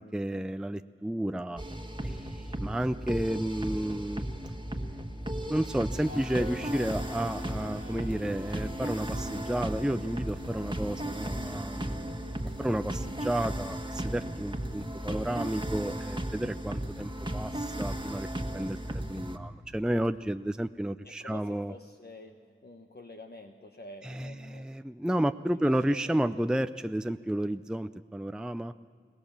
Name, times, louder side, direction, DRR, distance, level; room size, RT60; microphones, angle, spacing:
voice 1, 0.0-1.6 2.0-4.2 5.5-12.2 12.6-18.3 18.5-21.7 24.0-28.7, right 1 dB, 5° right, 10 dB, 0.5 m, -32 dB
sound 1, 1.6-19.4, right 1 dB, 20° right, 1.6 m, -35 dB
sound 2, 6.0-17.9, left 1 dB, 90° left, 7.2 m, -47 dB
voice 2, 21.0-24.7 25.5-26.1, left 2 dB, 50° left, 3 dB, 1.2 m, -48 dB
22.5 x 19.5 x 7.3 m, 2.2 s
wide cardioid pair, 45°, 21 cm